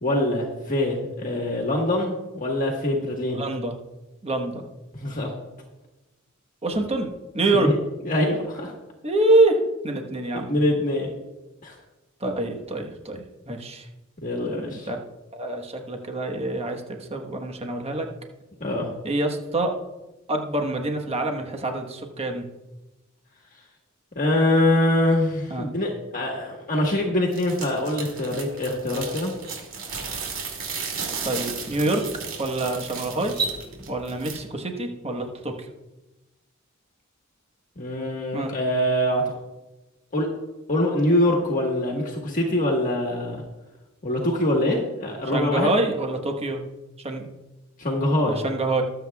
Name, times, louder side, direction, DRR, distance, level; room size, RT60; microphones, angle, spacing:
voice 1, 0.0-3.4 4.9-5.3 7.5-7.8 8.0-8.7 10.5-11.1 11.6-11.7 14.2-14.9 18.6-18.9 24.1-29.3 37.8-39.2 40.1-40.3 40.7-43.4 44.0-45.7 47.8-48.4, left 1 dB, 40° left, -1 dB, 1.4 m, -24 dB
voice 2, 3.3-3.7 4.2-4.6 6.6-7.7 9.0-9.6 9.8-10.6 12.2-13.9 14.9-15.0 15.3-18.1 19.0-19.8 20.3-22.4 25.5-25.7 31.2-32.0 32.4-33.3 33.9-35.7 38.3-38.5 45.3-46.6 47.0-47.3 48.3-48.8, right 2 dB, 30° right, 3 dB, 1.2 m, -26 dB
sound 1, 27.3-34.4, right 5 dB, 70° right, 2.5 m, -34 dB
sound 2, 28.6-28.7 29.1-29.6 31.2-31.3 31.8-32.1 33.2-33.6, right 4 dB, 50° right, 3.6 m, -31 dB
23.0 x 7.9 x 2.3 m, 1.1 s
head